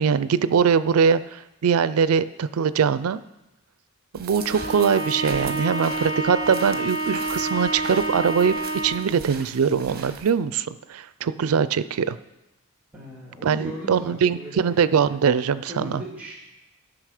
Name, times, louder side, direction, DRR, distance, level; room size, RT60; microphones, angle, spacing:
voice 1, 0.0-3.2 4.1-12.2 13.4-16.0, right 6 dB, 85° right, 15 dB, 0.4 m, -22 dB
sound 1, 4.1-10.3, right 5 dB, 45° right, 1.0 m, -40 dB
Bowed string instrument, 4.3-9.2, right 2 dB, 40° left, 3.0 m, -28 dB
voice 2, 12.9-14.8 15.7-16.3, equal, 5° right, -2 dB, 1.9 m, -38 dB
12.5 x 6.1 x 4.9 m, 0.94 s
head